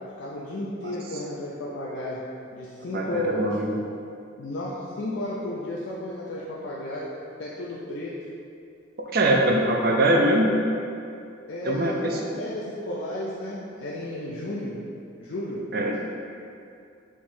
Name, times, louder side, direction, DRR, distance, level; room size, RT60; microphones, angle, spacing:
voice 1, 0.2-2.2 2.5-3.6 4.4-8.1 11.5-14.8 15.2-15.7, left 1 dB, 70° left, -7 dB, 0.5 m, -33 dB
voice 2, 2.9-3.7 9.1-10.5 11.6-12.2 15.7-15.9, right 1 dB, 50° right, 1 dB, 0.4 m, -22 dB
4.8 x 3.6 x 2.6 m, 2.6 s
head